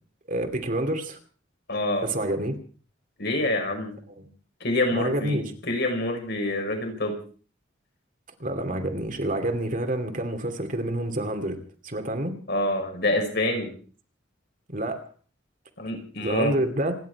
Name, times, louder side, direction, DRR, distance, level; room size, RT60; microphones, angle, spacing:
voice 1, 0.3-1.2 2.0-2.6 4.2-4.3 4.9-5.4 8.4-12.3 14.7-15.0 16.2-17.0, right 1 dB, 45° right, 2.6 m, -28 dB
voice 2, 1.7-2.1 3.2-3.9 4.6-7.1 12.5-13.7 15.8-16.6, left 1 dB, 60° left, 5.6 m, -26 dB
27.5 x 11.0 x 4.7 m
head